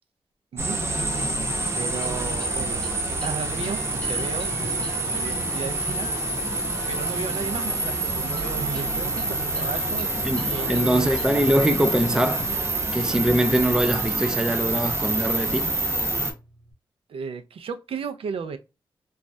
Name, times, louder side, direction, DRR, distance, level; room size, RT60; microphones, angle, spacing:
voice 1, 0.5-1.5 1.8-2.9 3.2-4.5 5.1-6.1 6.9-11.5 17.1-18.6, right 6 dB, 75° right, 0.5 m, -34 dB
sound 1, 0.6-16.3, right 2 dB, 30° right, 0.8 m, -27 dB
sound 2, 2.0-16.7, equal, 10° left, 0.8 m, -42 dB
voice 2, 10.2-12.5 12.9-15.7, right 1 dB, 5° right, 0.3 m, -23 dB
3.1 x 2.3 x 2.5 m
wide cardioid pair, 145°, 10 cm